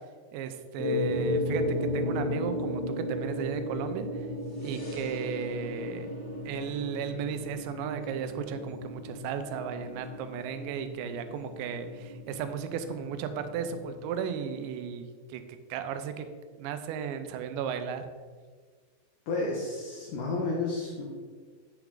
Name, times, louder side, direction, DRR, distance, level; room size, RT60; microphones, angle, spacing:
voice 1, 0.3-1.6 1.9-4.3 4.6-6.1 6.5-15.4 15.7-16.3 16.6-18.1, right 7 dB, 90° right, 8 dB, 2.8 m, -35 dB
sound 1, 0.8-14.1, left 1 dB, 50° left, 1.7 m, -35 dB
voice 2, 19.3-21.0, left 3 dB, 65° left, -3 dB, 2.1 m, -31 dB
8.9 x 5.9 x 3.8 m, 1.6 s
omnidirectional pair, 5.0 m